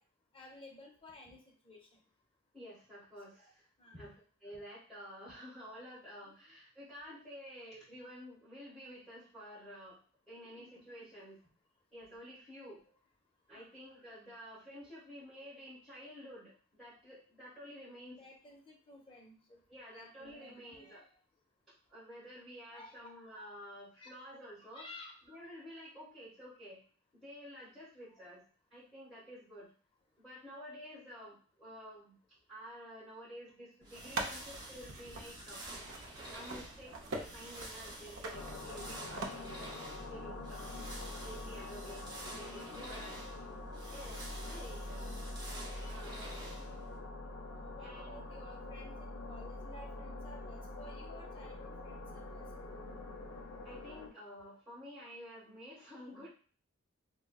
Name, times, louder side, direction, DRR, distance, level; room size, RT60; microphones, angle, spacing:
voice 1, 0.3-1.4 1.6-1.8 3.8-4.1 6.2-6.3 10.4-10.8 13.5-13.7 18.1-19.4 19.9-21.1 22.7-23.0 24.0-24.2 24.7-25.2 28.1-28.2 41.8-42.0 42.7-42.9 46.5-46.8 47.5-53.0, left 2 dB, 25° left, 1 dB, 0.6 m, -54 dB
voice 2, 2.5-3.7 4.0-4.1 4.4-10.0 10.3-11.4 11.9-12.8 13.5-18.2 19.7-21.0 21.9-24.9 25.3-26.8 27.1-28.4 28.7-29.7 30.2-32.2 32.5-35.8 36.3-39.7 40.1-40.7 41.2-43.2 43.9-45.1 45.9-46.6 47.8-48.3 53.6-56.3, equal, ahead, -11 dB, 1.4 m, -51 dB
sound 1, 33.8-47.0, right 1 dB, 20° right, 0.7 m, -50 dB
sound 2, 33.9-39.3, right 2 dB, 65° right, 0.5 m, -44 dB
sound 3, 38.3-54.1, left 2 dB, 70° left, 0.6 m, -45 dB
3.7 x 2.1 x 2.3 m, 0.41 s
head